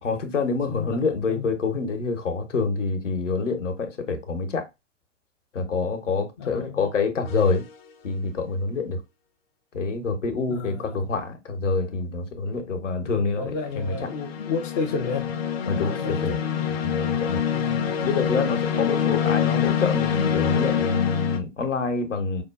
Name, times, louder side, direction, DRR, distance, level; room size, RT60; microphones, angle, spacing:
voice 1, 0.0-4.6 5.5-7.6 8.0-9.0 9.7-13.9 15.7-16.4 16.8-17.4 18.0-22.4, left 4 dB, 75° left, 1.0 m, -26 dB
voice 2, 0.7-1.5 6.4-6.9 10.5-11.1 13.1-15.3 15.8-16.7 17.5-17.9, left 4 dB, 20° left, 0.3 m, -32 dB
sound 1, 7.3-7.6 13.5-21.4, left 8 dB, 50° left, 0.7 m, -26 dB
5.1 x 2.2 x 2.3 m
figure-of-eight pair, 105°, 37 cm